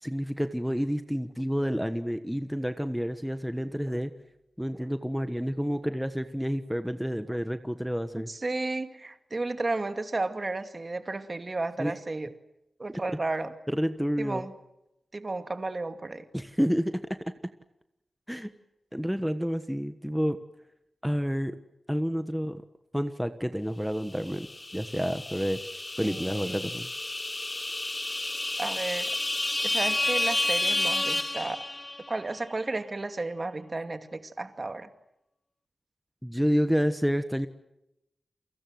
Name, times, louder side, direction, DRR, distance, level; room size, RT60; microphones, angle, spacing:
voice 1, 0.0-4.1 4.6-8.3 11.8-11.9 12.9-13.0 13.7-14.4 16.3-17.0 18.3-18.5 18.9-20.4 21.0-21.6 21.9-22.6 22.9-24.5 24.7-25.6 26.0-26.9 36.2-37.5, equal, ahead, 9 dB, 1.3 m, -29 dB
voice 2, 8.2-12.3 12.8-13.5 14.2-14.5 15.1-16.2 26.0-26.7 28.6-29.2 29.6-31.6 32.1-34.9, right 2 dB, 40° right, 8 dB, 2.4 m, -33 dB
sound 1, 24.2-32.2, left 2 dB, 25° left, 1.1 m, -30 dB
30.0 x 24.0 x 7.9 m, 0.86 s
wide cardioid pair, 90°, 0 cm